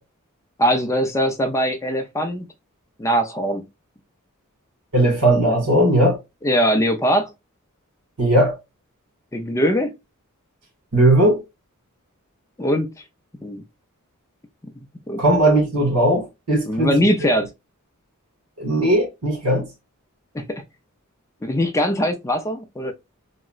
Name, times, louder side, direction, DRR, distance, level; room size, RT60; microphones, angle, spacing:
voice 1, 0.6-2.5 3.0-3.7 6.4-7.3 9.3-10.0 12.6-12.9 13.4-13.6 14.8-15.2 16.7-17.5 20.3-20.6 21.4-22.9, equal, 15° left, 0.4 m, -21 dB
voice 2, 4.9-6.2 8.2-8.6 10.9-11.4 15.2-17.3 18.6-19.7, right 1 dB, 80° right, 1.7 m, -18 dB
3.8 x 2.1 x 2.3 m
head